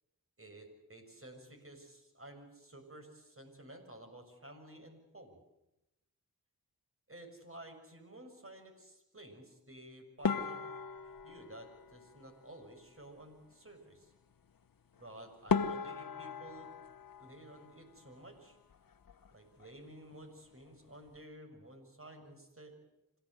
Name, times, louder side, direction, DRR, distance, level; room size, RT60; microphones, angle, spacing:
voice 1, 0.4-5.4 7.1-10.6 11.2-14.1 15.0-16.7 17.2-18.6 19.3-22.8, right 1 dB, 35° right, 5 dB, 6.9 m, -53 dB
sound 1, 10.2-12.7 15.0-15.1 15.5-18.3 18.5-19.3 19.6-19.8 20.1-20.2 20.8-21.2, left 5 dB, 65° left, 1.2 m, -38 dB
26.5 x 17.0 x 8.1 m, 0.91 s
cardioid pair, 45°, 37 cm